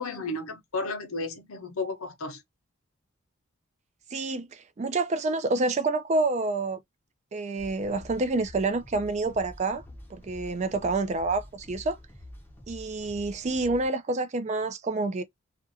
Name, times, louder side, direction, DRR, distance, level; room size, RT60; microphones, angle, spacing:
voice 1, 0.0-2.4, left 3 dB, 90° left, 0.8 m, -33 dB
voice 2, 4.1-6.8 7.3-9.8 10.1-12.0 12.7-15.2, right 3 dB, 35° right, 0.4 m, -28 dB
sound 1, 7.6-13.9, left 1 dB, 10° left, 0.6 m, -47 dB
2.5 x 2.3 x 2.6 m
head